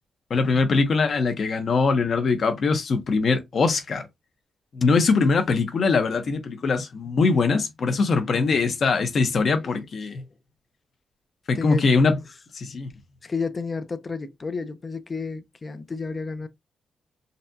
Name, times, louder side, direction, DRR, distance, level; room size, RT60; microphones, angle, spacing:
voice 1, 0.3-4.1 4.7-10.2 11.5-12.2 12.5-12.9, left 4 dB, 55° left, 0.8 m, -22 dB
voice 2, 9.4-9.9 10.2-10.3 11.5-11.8 12.2-12.3 13.2-16.5, left 4 dB, 30° left, 0.5 m, -32 dB
4.0 x 2.1 x 2.6 m
wide cardioid pair, 120°, 0 cm